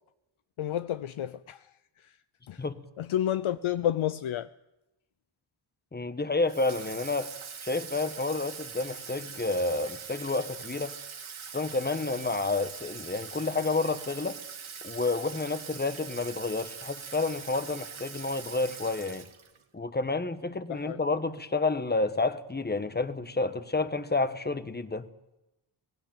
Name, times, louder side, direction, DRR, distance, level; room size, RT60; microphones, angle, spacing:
voice 1, 0.6-2.2 2.5-2.6 3.0-4.5 20.7-21.0, left 11 dB, 80° left, 0.7 m, -31 dB
voice 2, 5.9-7.3 7.6-10.9 11.5-14.4 14.8-19.3 19.7-25.1, left 3 dB, 20° left, 1.2 m, -30 dB
Water tap faucet / Sink (filling or washing), 6.5-19.6, right 6 dB, 85° right, 1.9 m, -43 dB
18.0 x 17.5 x 8.9 m
wide cardioid pair, 105°, 47 cm